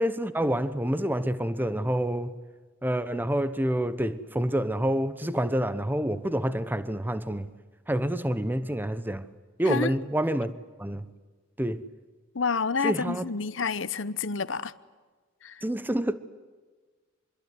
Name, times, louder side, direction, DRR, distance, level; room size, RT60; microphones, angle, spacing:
voice 1, 0.0-2.4 2.8-7.5 7.9-9.3 9.6-10.5 10.8-11.1 11.6-11.8 12.8-13.2 15.6-16.1, right 1 dB, 10° right, 0.9 m, -27 dB
voice 2, 12.3-14.7 15.4-15.6, left 5 dB, 70° left, 0.9 m, -29 dB
25.5 x 22.0 x 9.5 m
head